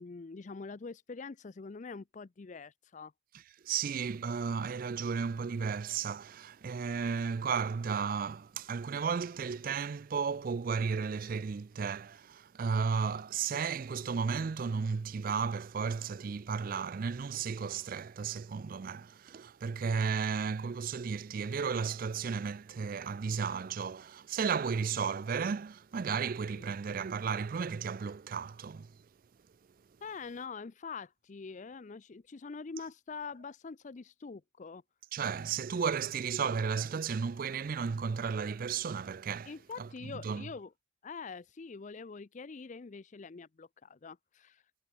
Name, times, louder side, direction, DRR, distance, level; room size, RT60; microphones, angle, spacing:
voice 1, 0.0-3.1 26.6-26.7 30.0-34.8 39.5-40.7 41.0-44.6, left 4 dB, 40° left, 0.4 m, -44 dB
voice 2, 3.6-28.9 35.1-39.9 40.2-40.4, right 6 dB, 45° right, 0.4 m, -34 dB
head